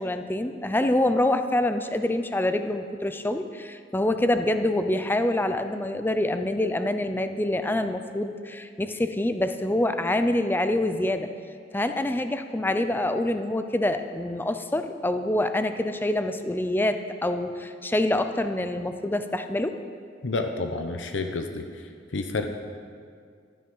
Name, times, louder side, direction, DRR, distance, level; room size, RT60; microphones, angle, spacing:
voice 1, 0.0-11.3 11.7-19.8, left 1 dB, 10° left, 8 dB, 0.5 m, -26 dB
voice 2, 20.2-21.6 22.1-22.5, left 3 dB, 85° left, 5 dB, 0.8 m, -29 dB
13.0 x 9.5 x 5.5 m, 2.2 s
head